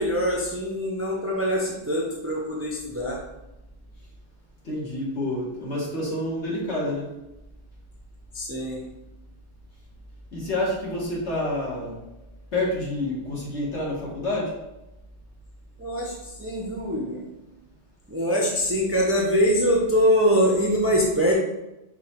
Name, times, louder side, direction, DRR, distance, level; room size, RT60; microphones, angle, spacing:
voice 1, 0.0-3.2 8.3-8.8 15.8-17.3 18.1-21.3, equal, 15° right, -2 dB, 0.5 m, -23 dB
voice 2, 4.6-7.1 10.3-12.0 12.5-14.6, left 1 dB, 75° left, -4 dB, 1.7 m, -28 dB
5.2 x 2.3 x 4.3 m, 0.97 s
omnidirectional pair, 1.2 m